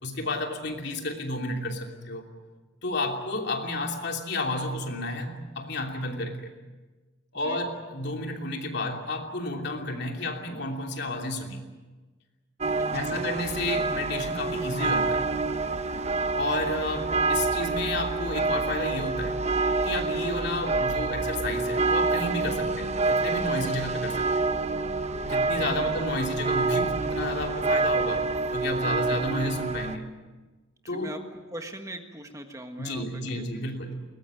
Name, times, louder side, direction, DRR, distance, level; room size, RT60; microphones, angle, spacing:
voice 1, 0.0-2.3 2.8-6.5 7.3-11.6 12.9-15.3 16.3-19.4 19.8-24.4 25.2-28.3 28.5-30.1 30.9-31.1 32.8-34.0, left 2 dB, 55° left, 3 dB, 3.0 m, -31 dB
sound 1, 12.6-30.0, right 3 dB, 35° right, 0.9 m, -27 dB
voice 2, 12.8-13.3 25.7-25.9 30.8-33.4, right 1 dB, 15° right, 5 dB, 1.5 m, -41 dB
22.0 x 19.5 x 9.1 m, 1.3 s
head